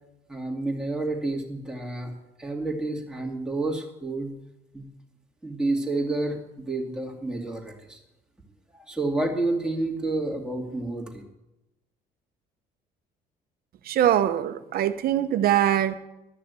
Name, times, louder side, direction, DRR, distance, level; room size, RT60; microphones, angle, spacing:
voice 1, 0.3-4.3 4.7-4.9 5.4-8.0 8.7-11.2, right 2 dB, 5° right, 0 dB, 2.4 m, -29 dB
voice 2, 13.9-16.0, right 11 dB, 65° right, 11 dB, 0.9 m, -22 dB
13.0 x 6.6 x 8.2 m, 0.93 s
cardioid pair, 110°, 17 cm